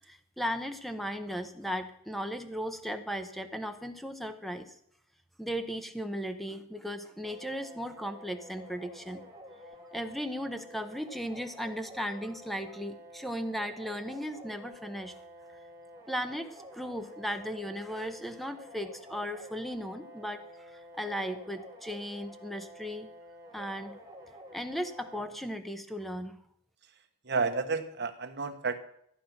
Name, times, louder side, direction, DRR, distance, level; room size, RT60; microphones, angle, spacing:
voice 1, 0.1-4.7 5.4-9.2 9.9-15.1 16.1-23.1 23.5-24.0 24.5-26.4, equal, ahead, 8 dB, 0.9 m, -36 dB
sound 1, 7.2-25.2, equal, 15° right, 2.3 m, -50 dB
voice 2, 27.2-28.8, right 4 dB, 50° right, 6 dB, 1.2 m, -31 dB
14.5 x 9.3 x 5.9 m, 0.72 s
head